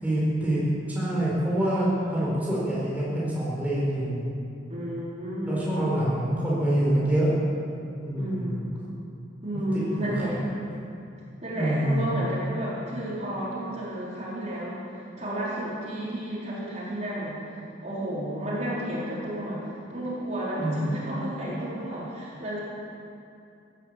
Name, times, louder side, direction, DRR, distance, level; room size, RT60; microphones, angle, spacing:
voice 1, 0.0-0.6 0.9-4.2 5.5-7.3 8.0-8.6 9.7-10.3 11.5-12.1 20.6-20.8, right 1 dB, 10° right, -7 dB, 4.2 m, -26 dB
voice 2, 1.6-2.3 4.7-6.0 8.2-8.7 9.4-10.4 11.4-14.8 15.2-22.6, right 1 dB, 35° right, -7 dB, 4.5 m, -32 dB
17.0 x 11.0 x 7.7 m, 2.6 s
head